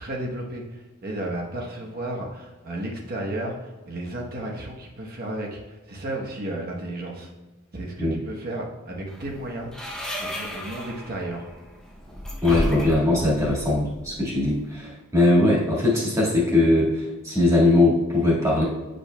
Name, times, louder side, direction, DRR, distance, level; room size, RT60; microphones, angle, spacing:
voice 1, 0.0-7.3 7.7-9.7 10.2-11.5, right 1 dB, 45° right, -1 dB, 1.0 m, -33 dB
sound 1, 9.1-14.8, equal, 5° left, 0.6 m, -34 dB
voice 2, 12.4-18.6, left 2 dB, 15° right, -6 dB, 1.7 m, -20 dB
8.5 x 5.2 x 2.2 m, 1.1 s
head